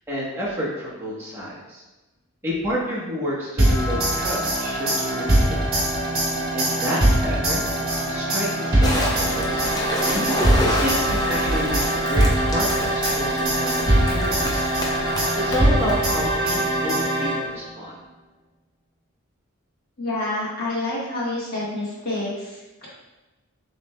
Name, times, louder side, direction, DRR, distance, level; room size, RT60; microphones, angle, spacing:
voice 1, 0.1-1.8 2.4-5.8 6.5-7.6 7.9-9.8 10.6-14.5 15.3-17.9, equal, 10° right, -8 dB, 1.1 m, -30 dB
sound 1, 3.6-17.7, right 1 dB, 45° right, 1.4 m, -22 dB
sound 2, 8.8-16.5, equal, 20° left, 0.5 m, -30 dB
sound 3, 11.0-14.3, right 1 dB, 80° right, 0.5 m, -34 dB
voice 2, 20.0-22.9, left 2 dB, 45° left, -7 dB, 1.4 m, -28 dB
6.7 x 3.1 x 2.3 m, 1.1 s
head